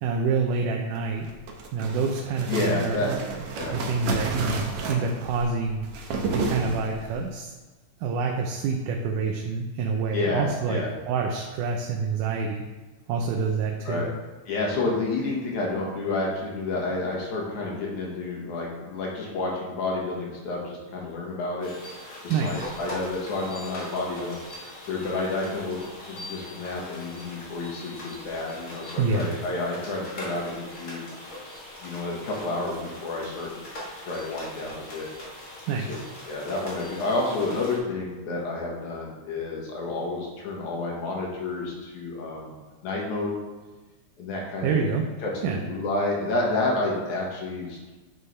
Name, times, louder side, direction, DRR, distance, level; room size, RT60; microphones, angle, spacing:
voice 1, 0.0-1.3 1.7-3.2 3.7-5.8 6.3-7.5 8.0-12.6 13.1-14.1 22.3-22.7 29.0-29.3 35.7-36.0 44.6-45.1 45.4-45.6, right 4 dB, 85° right, 1 dB, 2.2 m, -27 dB
sound 1, 1.2-7.2, right 3 dB, 70° right, 1.5 m, -32 dB
voice 2, 2.5-3.1 3.6-3.8 10.1-10.9 13.8-14.1 14.5-21.7 22.2-25.8 26.1-31.1 31.8-35.1 35.9-36.0 36.3-42.5 42.8-43.4 44.2-44.8 45.2-47.9, left 2 dB, 70° left, -2 dB, 2.8 m, -30 dB
sound 2, 21.6-37.8, left 1 dB, 40° left, 1.4 m, -42 dB
9.4 x 5.4 x 3.3 m, 1.2 s
omnidirectional pair, 3.6 m